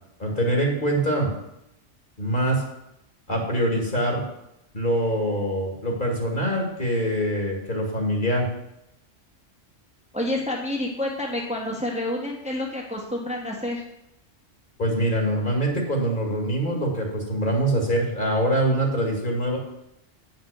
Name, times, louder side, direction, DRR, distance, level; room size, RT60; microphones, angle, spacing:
voice 1, 0.2-1.3 2.2-2.6 3.3-4.2 4.7-8.5 14.8-19.6, right 1 dB, 40° left, 0 dB, 2.4 m, -24 dB
voice 2, 10.1-13.8, left 1 dB, 5° right, -2 dB, 1.4 m, -28 dB
9.3 x 5.9 x 6.6 m, 0.83 s
omnidirectional pair, 1.3 m